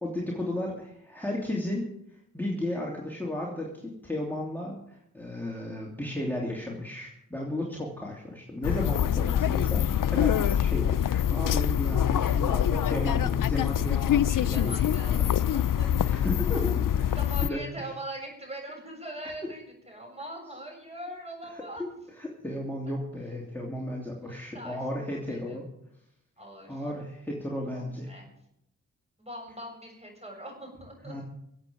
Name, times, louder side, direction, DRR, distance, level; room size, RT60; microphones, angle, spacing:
voice 1, 0.0-1.9 2.3-15.5 16.0-17.2 17.4-17.6 22.2-25.7 26.7-28.1 31.0-31.2, left 1 dB, 5° left, -3 dB, 3.0 m, -34 dB
sound 1, 8.6-17.5, left 10 dB, 75° left, 0.5 m, -25 dB
voice 2, 14.4-16.2 17.1-21.8 23.8-23.9 24.2-25.6 26.4-26.8 27.7-28.3 29.2-31.2, right 1 dB, 20° right, 1 dB, 7.2 m, -42 dB
24.0 x 8.3 x 5.2 m, 0.76 s
wide cardioid pair, 65°, 32 cm